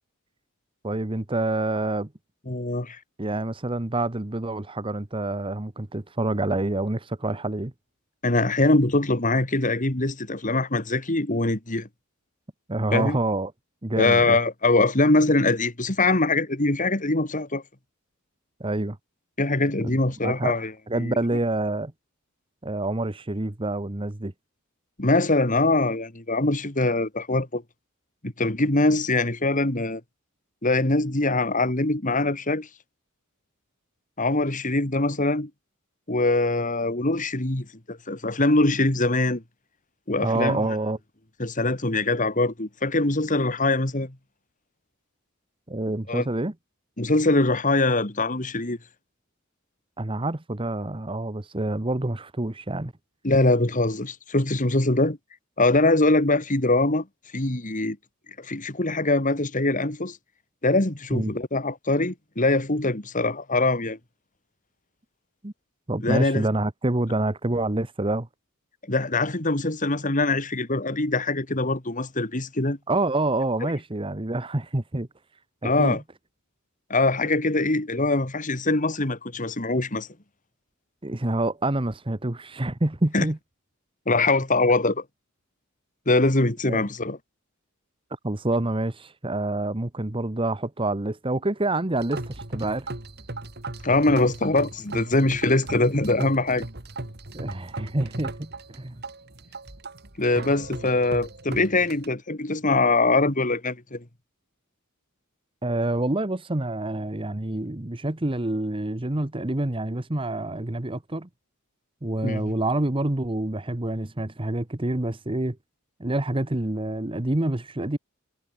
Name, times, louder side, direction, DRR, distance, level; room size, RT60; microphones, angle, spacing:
voice 1, 0.8-2.1 3.2-7.7 12.7-13.5 13.8-14.4 18.6-19.0 19.9-20.5 20.9-21.9 22.6-24.3 40.2-41.0 45.7-46.5 50.0-52.9 61.1-61.3 65.4-65.5 65.9-68.3 72.9-75.1 75.6-76.0 81.0-83.4 86.7-86.8 88.2-92.9 97.3-98.9 105.6-111.3 112.0-115.6 116.0-118.0, right 2 dB, 25° right, 1.1 m, -27 dB
voice 2, 2.5-3.0 8.2-11.9 12.9-13.2 14.0-17.6 19.4-21.2 25.0-27.6 28.2-30.0 30.6-32.7 34.2-35.5 36.1-39.4 40.1-40.6 41.4-44.1 46.1-46.3 47.0-48.8 53.2-55.2 55.6-57.1 57.3-58.0 58.4-60.2 60.6-64.0 66.0-66.5 68.9-72.8 75.6-76.0 76.9-80.1 83.1-83.2 84.1-85.0 86.1-87.2 93.8-96.7 100.2-104.0 112.2-112.5, left 2 dB, 35° left, 2.4 m, -23 dB
sound 1, 92.0-102.1, right 2 dB, 50° right, 2.8 m, -37 dB
head